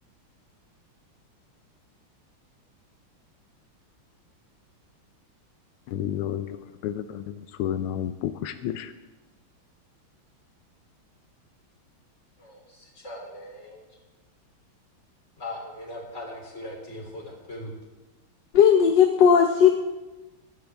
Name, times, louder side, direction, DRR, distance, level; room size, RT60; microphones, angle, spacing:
voice 1, 5.9-8.9, left 10 dB, 85° left, 10 dB, 1.6 m, -31 dB
voice 2, 12.4-14.0 15.4-17.7, left 1 dB, 35° left, 0 dB, 3.5 m, -40 dB
voice 3, 18.5-19.8, left 7 dB, 65° left, 4 dB, 1.3 m, -17 dB
23.0 x 11.5 x 3.5 m, 1.2 s
omnidirectional pair, 2.3 m